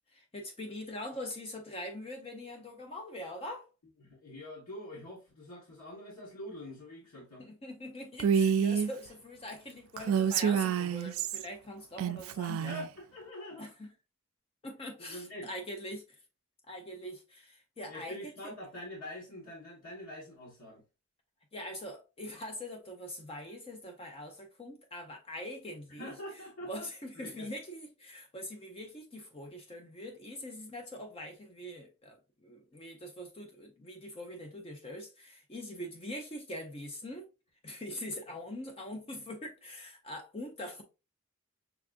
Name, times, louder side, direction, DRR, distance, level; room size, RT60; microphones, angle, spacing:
voice 1, 0.1-3.7 7.4-12.7 13.6-13.9 14.6-16.2 16.7-18.3 21.5-26.1 26.7-37.3 37.6-40.8, left 1 dB, 25° left, 0.5 m, -43 dB
voice 2, 4.0-7.5 12.7-13.7 15.0-15.5 17.9-20.8 26.0-26.9 27.1-27.5, equal, 85° left, 1.3 m, -45 dB
Female speech woman speaking, 8.2-8.9 10.0-11.4 12.0-12.9, right 7 dB, 70° right, 0.3 m, -28 dB
5.7 x 2.4 x 2.5 m
head